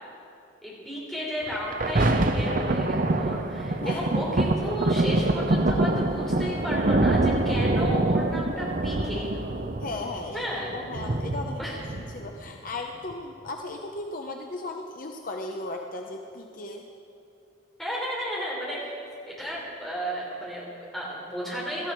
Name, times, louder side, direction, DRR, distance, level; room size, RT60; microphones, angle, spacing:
voice 1, 0.6-9.3 10.3-10.7 11.6-11.8 17.8-18.9 19.3-21.9, equal, ahead, -6 dB, 3.6 m, -33 dB
Thunder, 1.5-12.5 13.1-13.2, right 2 dB, 40° right, 0.7 m, -25 dB
voice 2, 9.8-10.4 10.7-11.7 11.9-16.8, left 2 dB, 45° left, 2 dB, 0.7 m, -36 dB
17.5 x 13.0 x 4.5 m, 2.6 s
head